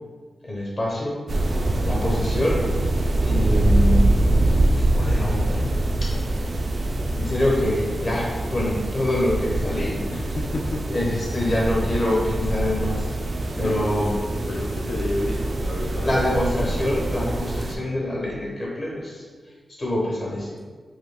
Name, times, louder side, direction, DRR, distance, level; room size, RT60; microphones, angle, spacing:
voice 1, 0.4-1.2 1.8-2.7 3.2-4.2 4.9-5.7 6.0-6.5 7.1-10.3 10.9-14.1 16.0-19.2 19.8-20.6, left 1 dB, 35° left, -4 dB, 1.0 m, -26 dB
sound 1, 1.3-17.7, right 1 dB, 50° right, 0.3 m, -24 dB
voice 2, 10.1-10.9 13.6-14.0 14.3-16.1, left 2 dB, 85° left, -1 dB, 0.3 m, -31 dB
4.5 x 2.7 x 2.2 m, 1.5 s
wide cardioid pair, 160°, 0 cm